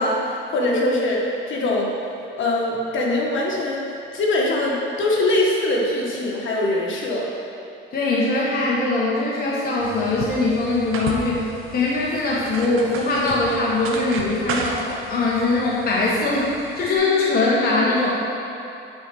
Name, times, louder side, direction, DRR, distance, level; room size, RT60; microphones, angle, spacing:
voice 1, 0.0-1.9 2.4-3.8 4.1-7.3, left 1 dB, 65° left, -3 dB, 1.6 m, -22 dB
voice 2, 7.9-11.5 11.7-18.1, left 2 dB, 45° left, -5 dB, 1.2 m, -21 dB
sound 1, 9.8-17.0, right 4 dB, 75° right, 0.9 m, -34 dB
9.4 x 4.6 x 5.9 m, 2.7 s
cardioid pair, 120°, 21 cm